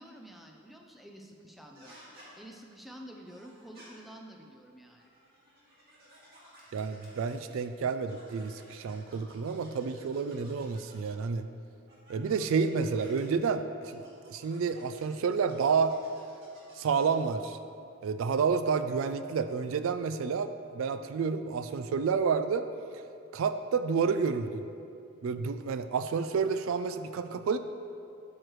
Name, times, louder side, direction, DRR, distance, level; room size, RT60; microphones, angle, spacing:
voice 1, 0.0-2.0 2.4-5.1, right 1 dB, ahead, 1 dB, 0.5 m, -49 dB
sound 1, 1.7-2.3 3.3-3.9 4.9-7.7 8.0-11.3 11.9-13.2 13.8-17.3, right 1 dB, 45° right, 2.0 m, -56 dB
voice 2, 6.7-11.5 12.1-15.9 16.7-17.6 18.0-22.7 23.3-24.6 25.2-27.6, right 5 dB, 75° right, 10 dB, 0.3 m, -30 dB
12.0 x 6.4 x 3.1 m, 2.5 s
head